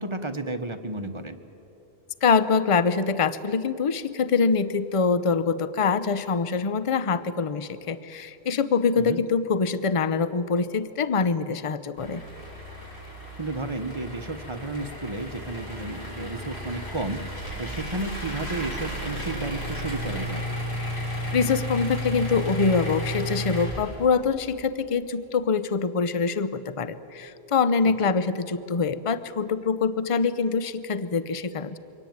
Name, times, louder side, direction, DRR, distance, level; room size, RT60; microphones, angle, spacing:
voice 1, 0.0-1.4 9.0-9.2 13.4-17.2 17.6-20.4 28.0-28.1, right 2 dB, 30° right, 8 dB, 1.1 m, -32 dB
voice 2, 2.2-12.2 21.3-31.8, left 5 dB, 35° left, 14 dB, 0.7 m, -24 dB
sound 1, 12.0-24.3, equal, 75° left, 5.3 m, -33 dB
24.0 x 18.0 x 9.4 m, 3.0 s
omnidirectional pair, 1.1 m